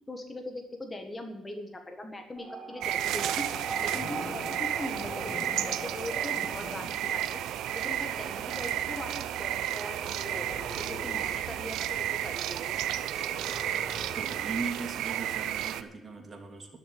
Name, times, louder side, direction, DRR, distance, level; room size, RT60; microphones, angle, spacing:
voice 1, 0.1-3.5 3.8-5.4 5.6-7.4 7.8-10.6 10.9-12.8, left 1 dB, 25° left, 4 dB, 1.6 m, -41 dB
sound 1, 2.4-13.3, right 3 dB, 20° right, 2.2 m, -43 dB
sound 2, 2.8-15.8, right 12 dB, 85° right, 0.6 m, -32 dB
sound 3, 3.5-7.1 7.8-8.0 9.8-11.3 13.0-14.5, left 4 dB, 40° left, 1.1 m, -45 dB
voice 2, 14.1-16.8, right 4 dB, 35° right, 3 dB, 2.8 m, -38 dB
12.0 x 6.8 x 9.4 m, 0.96 s
cardioid pair, 90°, 0 cm